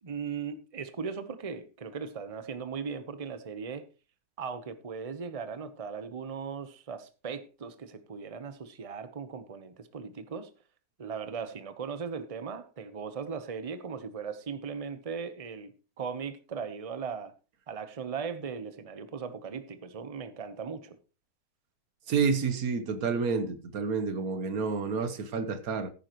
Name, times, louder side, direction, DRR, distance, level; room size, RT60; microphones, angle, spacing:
voice 1, 0.0-3.9 4.4-10.5 11.0-17.3 17.7-21.0, right 6 dB, 25° right, 0.8 m, -38 dB
voice 2, 22.1-25.9, right 5 dB, 60° right, 1.5 m, -29 dB
15.5 x 9.5 x 3.1 m
omnidirectional pair, 1.9 m